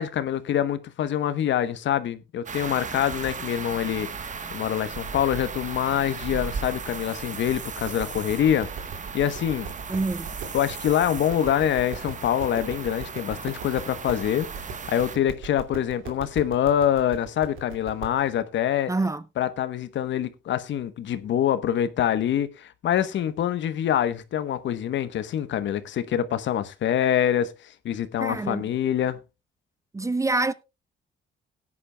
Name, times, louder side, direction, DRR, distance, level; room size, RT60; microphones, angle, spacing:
voice 1, 0.0-8.7 9.1-9.7 10.5-18.9 19.4-29.2, left 10 dB, 70° left, 1.0 m, -25 dB
sound 1, 2.5-15.2, right 5 dB, 40° right, 1.2 m, -36 dB
sound 2, 7.8-18.3, right 5 dB, 85° right, 2.5 m, -40 dB
voice 2, 9.9-10.3 18.9-19.2 28.2-28.7 29.9-30.5, right 2 dB, 15° right, 0.6 m, -26 dB
17.5 x 9.8 x 2.2 m
cardioid pair, 90°, 20 cm